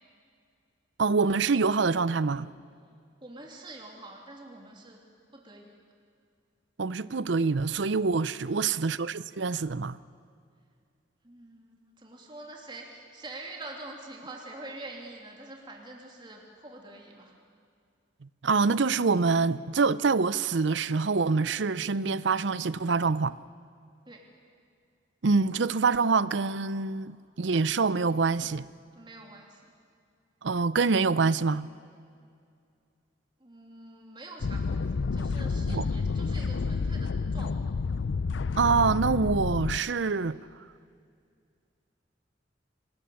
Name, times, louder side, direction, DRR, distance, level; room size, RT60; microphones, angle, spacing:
voice 1, 1.0-2.5 6.8-10.0 18.4-23.4 25.2-28.7 30.4-31.7 35.7-35.9 38.6-40.4, right 4 dB, 75° right, 0.6 m, -25 dB
voice 2, 3.2-5.0 5.3-5.8 8.5-8.9 11.2-17.3 24.1-24.3 28.9-29.6 33.4-37.8, right 2 dB, 25° right, 3.0 m, -45 dB
sound 1, 34.4-39.8, left 4 dB, 80° left, 0.5 m, -29 dB
27.0 x 20.0 x 7.1 m
head